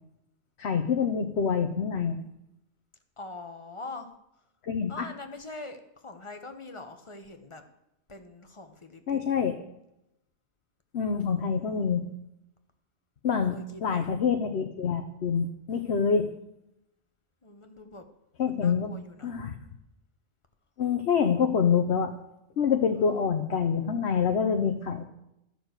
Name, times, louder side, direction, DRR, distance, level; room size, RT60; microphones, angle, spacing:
voice 1, 0.6-2.2 4.6-5.1 9.1-9.5 10.9-12.0 13.2-16.3 18.4-18.9 19.2-19.6 20.8-22.1 22.6-25.0, left 6 dB, 65° left, 4 dB, 1.1 m, -26 dB
voice 2, 3.2-4.1 4.9-7.6 8.1-9.3 11.2-11.9 13.5-14.1 17.4-18.0 18.4-19.3 22.9-23.2, left 2 dB, 25° left, 6 dB, 1.1 m, -44 dB
12.5 x 6.6 x 8.0 m, 0.84 s
omnidirectional pair, 1.2 m